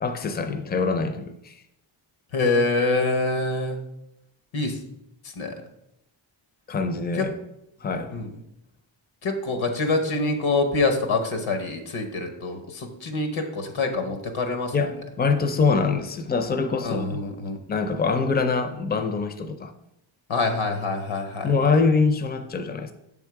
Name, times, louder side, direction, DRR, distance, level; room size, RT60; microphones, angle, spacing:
voice 1, 0.0-1.5 6.7-7.3 7.8-8.1 14.7-17.2 17.7-19.7 21.4-22.9, left 4 dB, 20° left, 8 dB, 0.4 m, -24 dB
voice 2, 2.3-3.8 4.5-4.8 5.4-5.5 7.2-7.3 8.1-8.3 9.2-14.7 16.8-17.6 20.3-21.5, left 3 dB, 85° left, 6 dB, 1.0 m, -25 dB
6.9 x 3.6 x 4.6 m, 0.83 s
wide cardioid pair, 150°, 46 cm